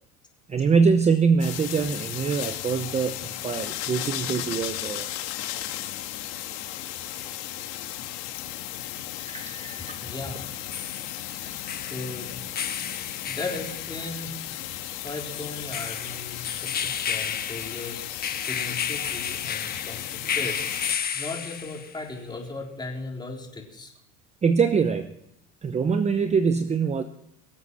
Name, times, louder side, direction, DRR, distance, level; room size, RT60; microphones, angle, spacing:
voice 1, 0.5-5.1 9.2-10.0 11.3-11.4 24.4-25.1 25.6-27.0, right 5 dB, 20° right, 10 dB, 0.7 m, -24 dB
sound 1, 1.4-20.9, left 13 dB, 75° left, 2.1 m, -35 dB
sound 2, 7.8-7.9 10.4-22.0, left 7 dB, 30° left, 1.3 m, -33 dB
voice 2, 10.0-10.4 11.9-12.5 13.3-14.3 15.0-18.0 18.5-20.6 21.1-23.9, left 2 dB, 15° left, 0 dB, 4.0 m, -37 dB
23.0 x 8.1 x 6.2 m, 0.79 s
supercardioid pair, 115°, 32 cm